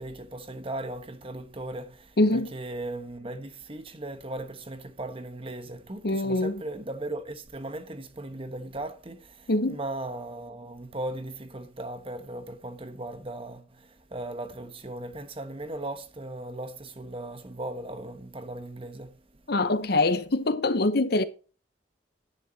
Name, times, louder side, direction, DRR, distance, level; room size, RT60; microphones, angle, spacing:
voice 1, 0.0-19.4, right 1 dB, 30° right, 1.2 m, -38 dB
voice 2, 2.2-2.5 6.0-6.6 9.5-9.8 19.5-21.2, left 2 dB, 60° left, 0.9 m, -24 dB
11.0 x 10.0 x 2.8 m
head